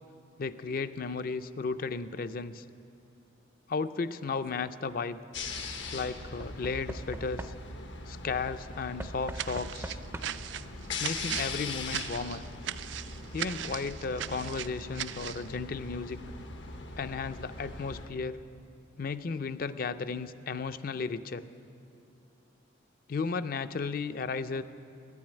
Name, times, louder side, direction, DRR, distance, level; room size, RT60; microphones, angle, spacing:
voice 1, 0.4-2.6 3.7-5.2 5.9-7.5 8.1-10.0 11.0-12.4 13.3-16.2 17.0-18.4 19.0-21.4 23.1-24.6, left 4 dB, 50° left, 12 dB, 0.4 m, -34 dB
Knock / Wood, 4.2-4.7 6.4-7.9 9.0-10.6 11.6-11.7 11.9-12.0, right 1 dB, 15° right, 0.4 m, -43 dB
sound 1, 5.3-18.1, left 3 dB, 90° left, 1.1 m, -41 dB
sound 2, 9.3-15.5, right 11 dB, 80° right, 0.4 m, -38 dB
12.0 x 10.5 x 8.9 m, 2.6 s
head